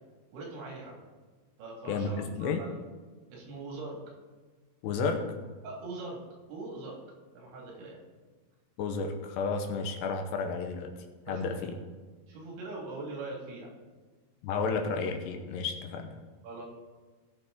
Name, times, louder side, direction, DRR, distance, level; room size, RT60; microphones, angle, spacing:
voice 1, 0.3-1.0 1.6-2.8 3.3-4.0 5.6-6.2 6.5-7.0 7.4-8.0 11.3-11.6 12.3-13.7 16.4-16.7, right 3 dB, 85° right, -1 dB, 4.6 m, -41 dB
voice 2, 1.9-2.6 4.8-5.3 8.8-11.8 14.4-16.2, left 4 dB, 80° left, 5 dB, 2.9 m, -32 dB
17.5 x 6.5 x 3.8 m, 1.4 s
omnidirectional pair, 5.2 m